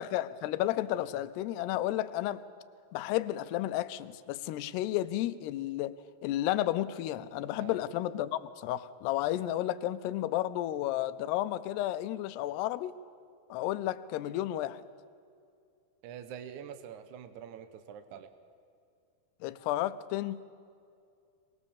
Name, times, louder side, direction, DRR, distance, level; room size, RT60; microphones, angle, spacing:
voice 1, 0.0-2.4 2.9-6.0 6.2-12.9 13.5-14.8 19.4-20.4, left 14 dB, 90° left, 14 dB, 2.8 m, -32 dB
voice 2, 16.0-18.3, right 8 dB, 65° right, 8 dB, 2.0 m, -45 dB
25.0 x 20.5 x 7.2 m, 2.3 s
omnidirectional pair, 4.6 m